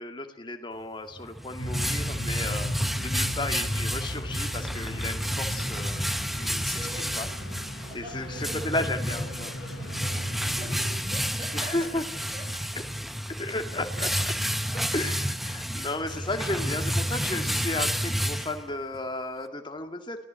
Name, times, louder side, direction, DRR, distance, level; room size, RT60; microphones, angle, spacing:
voice 1, 0.0-2.7 3.0-6.0 6.3-6.8 7.1-7.3 7.9-9.5 11.5-12.0 13.4-14.3 14.9-20.2, left 2 dB, 25° left, 6 dB, 2.3 m, -33 dB
sound 1, 1.1-19.0, equal, ahead, 0.9 m, -30 dB
sound 2, 1.6-11.0, left 1 dB, 75° left, 2.6 m, -38 dB
voice 2, 6.7-7.2 7.8-8.8 9.1-12.1 12.3-12.6, equal, 25° right, 3 dB, 5.9 m, -44 dB
23.5 x 17.0 x 7.7 m, 0.77 s
head